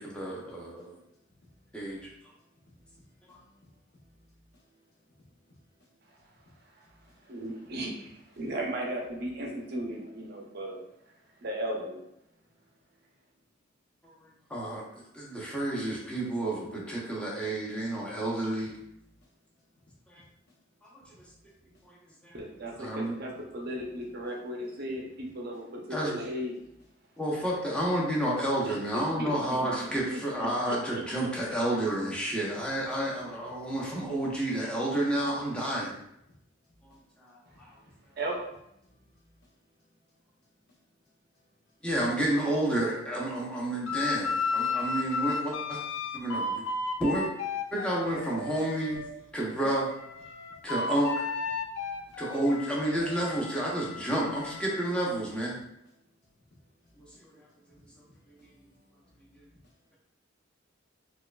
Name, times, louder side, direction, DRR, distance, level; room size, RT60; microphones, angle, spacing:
voice 1, 0.0-1.0 1.7-2.1 14.0-14.1 14.5-18.7 20.1-20.2 21.8-22.0 22.2-22.4 22.8-23.2 25.9-26.2 27.2-36.0 36.8-36.9 37.2-37.8 41.8-45.8 46.1-46.7 47.0-47.3 47.7-49.0 49.3-49.9 50.6-51.3 52.2-55.6 57.2-57.3, right 1 dB, 5° left, 0.7 m, -30 dB
voice 2, 0.5-8.9 9.6-11.3 12.2-13.0 19.2-19.9 20.5-21.9 22.4-24.9 25.3-25.7 26.5-26.9 33.2-33.7 36.6-38.2 38.6-41.8 46.4-46.6 50.5-50.7 51.5-52.2 55.9-60.0, left 1 dB, 50° left, 0.7 m, -64 dB
voice 3, 7.3-7.9 8.4-10.8 11.4-12.0 22.3-25.8 26.1-26.5 29.2-29.3 30.1-30.2 38.2-38.4, right 1 dB, 50° right, 0.6 m, -35 dB
sound 1, 43.9-49.1 49.5-54.8, left 4 dB, 70° left, 0.4 m, -34 dB
4.3 x 2.4 x 2.3 m
head